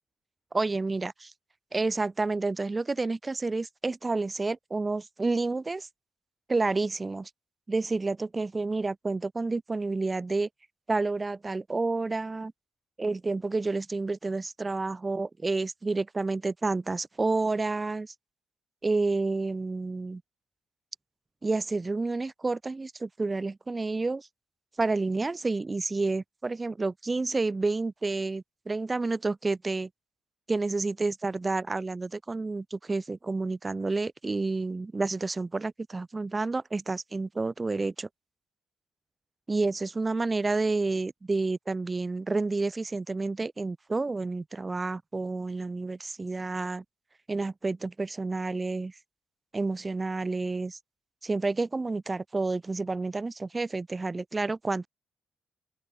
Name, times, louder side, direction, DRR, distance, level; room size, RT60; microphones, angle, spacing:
voice 1, 0.5-1.1 1.7-5.9 6.5-7.3 7.7-10.5 10.9-12.5 13.0-18.1 18.8-20.2 21.4-24.3 24.8-29.9 30.5-38.1 39.5-46.8 47.3-48.9 49.5-50.8 51.2-54.9, right 3 dB, 25° right, 1.0 m, -29 dB
open air
cardioid pair, 90°, 0 cm